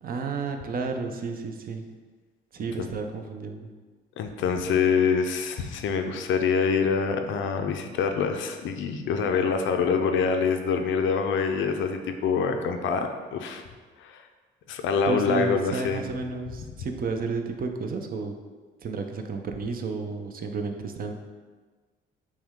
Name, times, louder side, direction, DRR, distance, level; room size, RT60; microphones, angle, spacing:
voice 1, 0.0-1.8 2.5-3.7 15.1-18.3 18.8-21.1, right 4 dB, 45° right, 5 dB, 0.5 m, -31 dB
voice 2, 4.2-13.6 14.0-14.2 14.7-16.0, left 5 dB, 75° left, 6 dB, 0.5 m, -25 dB
5.9 x 2.2 x 3.6 m, 1.4 s
cardioid pair, 90°, 20 cm